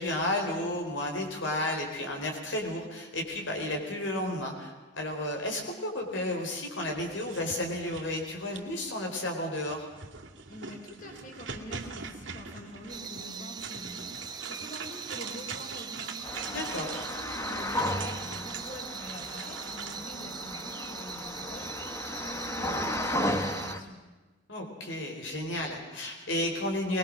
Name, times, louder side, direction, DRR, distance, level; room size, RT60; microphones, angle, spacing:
voice 1, 0.0-9.9 16.5-16.9 24.5-27.0, left 1 dB, 75° left, 2 dB, 4.1 m, -32 dB
sound 1, 7.1-8.9 9.6-20.0, right 5 dB, 70° right, 2.4 m, -43 dB
voice 2, 10.5-24.0, equal, 40° left, 2 dB, 4.4 m, -45 dB
sound 2, 12.9-23.8, right 5 dB, 20° right, 1.0 m, -41 dB
sound 3, 16.2-23.8, left 1 dB, 15° left, 1.3 m, -34 dB
22.5 x 21.5 x 6.4 m, 1.3 s
head